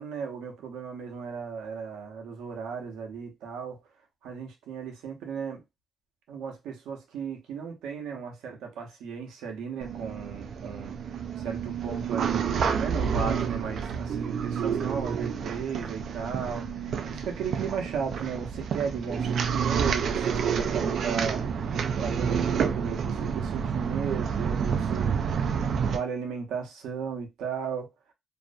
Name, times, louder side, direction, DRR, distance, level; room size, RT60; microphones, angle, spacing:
voice 1, 0.0-3.8 4.2-5.6 6.3-21.7 22.0-25.2 25.8-27.9, right 6 dB, 85° right, 0.7 m, -35 dB
sound 1, 9.8-26.0, right 7 dB, 65° right, 0.3 m, -29 dB
2.4 x 2.1 x 2.4 m
cardioid pair, 90°, 0 cm